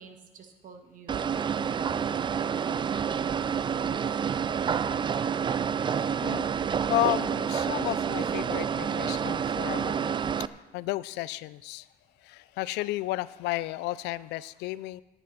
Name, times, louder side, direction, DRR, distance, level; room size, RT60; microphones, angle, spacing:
voice 1, 0.0-2.0 3.3-3.6, right 5 dB, 50° right, 5 dB, 1.7 m, -49 dB
sound 1, 1.1-10.5, right 7 dB, 30° right, 0.4 m, -28 dB
voice 2, 6.9-10.1 10.7-11.9 12.2-15.0, left 16 dB, 90° left, 18 dB, 0.4 m, -32 dB
16.5 x 9.9 x 4.2 m, 1.1 s
cardioid pair, 110°, 17 cm